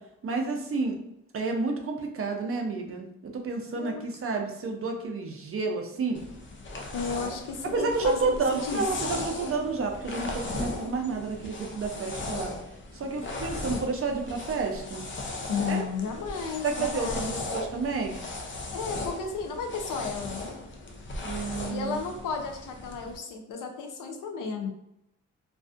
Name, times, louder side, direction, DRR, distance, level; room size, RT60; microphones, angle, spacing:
voice 1, 0.2-1.0 1.3-6.2 7.6-12.5 12.9-15.1 15.7-15.8 16.6-18.2 21.2-22.1, right 4 dB, 45° right, 2 dB, 0.5 m, -30 dB
voice 2, 3.7-4.1 6.9-8.3 8.6-9.1 15.5-17.3 18.7-20.5 21.7-24.7, left 5 dB, 90° left, 4 dB, 0.5 m, -33 dB
sound 1, 6.1-23.2, left 2 dB, 40° left, 0.5 m, -37 dB
2.5 x 2.3 x 2.4 m, 0.80 s
cardioid pair, 90°, 31 cm